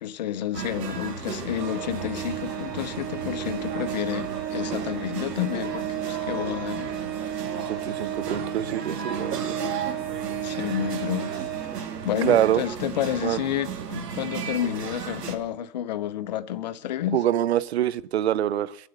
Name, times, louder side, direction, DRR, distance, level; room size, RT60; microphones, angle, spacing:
voice 1, 0.0-6.9 10.4-11.3 11.8-17.2, left 10 dB, 25° left, 0.6 m, -30 dB
sound 1, 0.5-15.4, right 6 dB, 70° right, 2.7 m, -35 dB
Organ, 1.6-12.3, right 10 dB, 20° right, 2.9 m, -34 dB
voice 2, 7.7-9.6 12.2-12.6 13.2-13.4 17.1-18.8, right 11 dB, 40° right, 0.7 m, -25 dB
23.5 x 8.0 x 6.5 m
hypercardioid pair, 155°, 49 cm